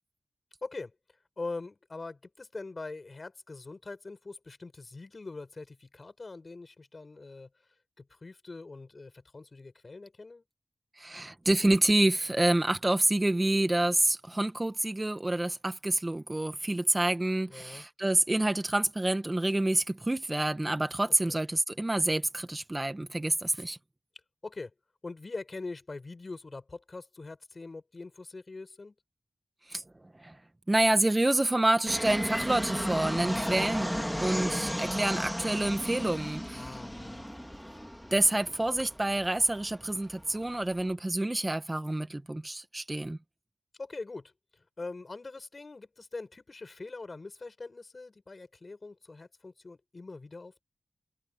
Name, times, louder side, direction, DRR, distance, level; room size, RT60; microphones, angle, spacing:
voice 1, 0.6-0.9 1.4-7.5 8.0-10.4 17.5-17.8 21.2-21.4 24.4-24.7 25.0-28.9 36.5-37.3 43.8-50.6, left 3 dB, 45° left, 6.6 m, -43 dB
voice 2, 11.0-23.8 29.7-29.8 30.2-30.4 30.7-33.9 34.2-36.8 38.1-43.2, right 1 dB, 20° right, 1.3 m, -28 dB
Fixed-wing aircraft airplane, 31.9-40.9, equal, 5° left, 2.1 m, -35 dB
wide cardioid pair, 85°, 0 cm